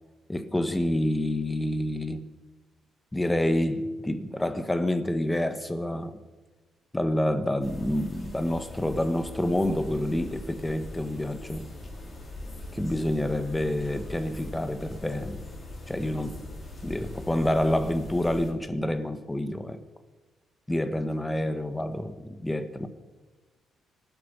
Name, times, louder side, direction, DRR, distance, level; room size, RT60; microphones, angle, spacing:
voice 1, 0.3-2.3 3.1-6.2 6.9-11.7 12.7-15.4 15.9-16.4 16.8-19.8 20.7-22.9, left 1 dB, 10° left, 1.4 m, -28 dB
sound 1, 7.6-18.5, left 2 dB, 30° left, 5.7 m, -41 dB
25.0 x 8.8 x 5.7 m
cardioid pair, 90°, 0 cm